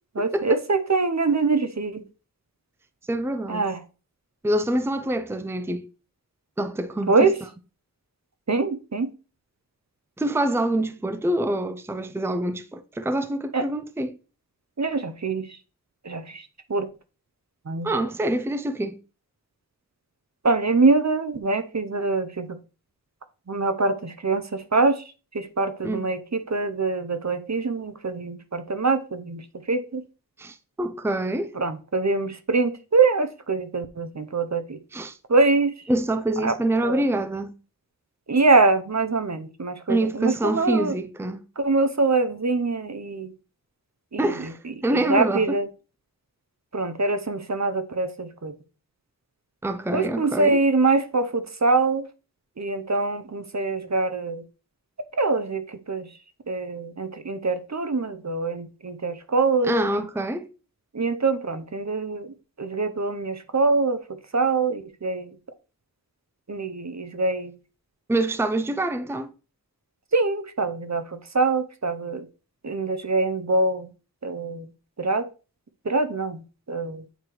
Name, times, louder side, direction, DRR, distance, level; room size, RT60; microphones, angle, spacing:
voice 1, 0.2-2.0 3.5-3.8 7.1-7.4 8.5-9.1 13.5-13.6 14.8-15.6 16.0-16.9 17.7-17.9 20.4-22.6 23.5-25.0 25.3-30.0 31.5-34.8 35.3-35.8 36.4-36.5 36.8-37.0 38.3-41.0 41.6-43.3 44.1-44.5 44.9-45.7 46.7-48.5 49.9-52.0 52.6-54.4 55.1-56.1 56.5-59.7 60.9-64.0 64.3-65.3 66.5-67.5 70.1-72.2 72.6-73.9 74.2-74.7 75.0-75.3 75.8-77.0, right 3 dB, 50° right, 0.8 m, -24 dB
voice 2, 3.1-3.6 4.4-5.9 6.6-7.3 10.2-14.2 17.8-19.0 25.8-26.1 30.4-31.5 34.9-35.2 35.9-37.5 39.9-41.4 44.2-45.5 49.6-50.6 59.6-60.5 68.1-69.3, right 1 dB, 5° right, 0.6 m, -26 dB
8.9 x 4.5 x 3.2 m
wide cardioid pair, 45°, 35 cm